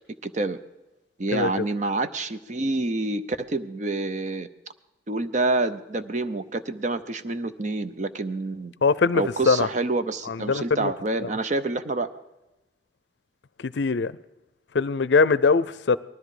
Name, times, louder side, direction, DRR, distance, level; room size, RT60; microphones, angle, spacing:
voice 1, 0.2-0.6 1.2-4.5 5.1-8.7 9.1-12.1, right 2 dB, 40° right, 0.7 m, -27 dB
voice 2, 8.8-9.7 10.3-10.9 11.2-11.3 13.6-14.1 14.7-16.0, left 4 dB, 70° left, 0.5 m, -22 dB
19.5 x 13.0 x 4.9 m
head